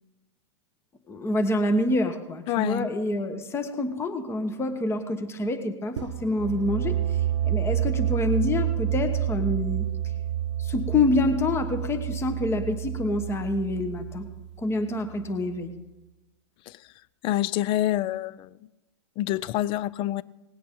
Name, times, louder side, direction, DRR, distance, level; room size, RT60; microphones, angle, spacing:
voice 1, 1.1-7.2 7.4-9.9 10.6-14.3 14.6-15.7, left 2 dB, 15° left, 1.2 m, -27 dB
voice 2, 2.5-2.9 16.7-16.8 17.2-18.5 19.2-20.2, left 14 dB, 35° left, 0.4 m, -26 dB
sound 1, 6.0-15.6, right 11 dB, 75° right, 0.8 m, -29 dB
18.5 x 8.5 x 5.4 m
hypercardioid pair, 130°, 15 cm